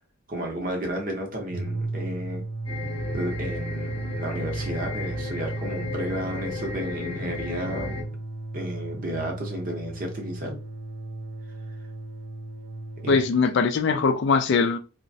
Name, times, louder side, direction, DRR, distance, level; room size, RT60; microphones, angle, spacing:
voice 1, 0.3-2.4 3.1-8.1 8.5-10.6 13.0-13.2 13.9-14.0, right 1 dB, 40° right, 0.7 m, -32 dB
sound 1, 1.4-13.3, right 2 dB, 80° right, 0.4 m, -35 dB
sound 2, 2.7-8.0, left 4 dB, 25° left, 0.7 m, -35 dB
voice 2, 13.1-14.8, left 4 dB, 55° left, 0.3 m, -21 dB
3.0 x 2.1 x 2.6 m
head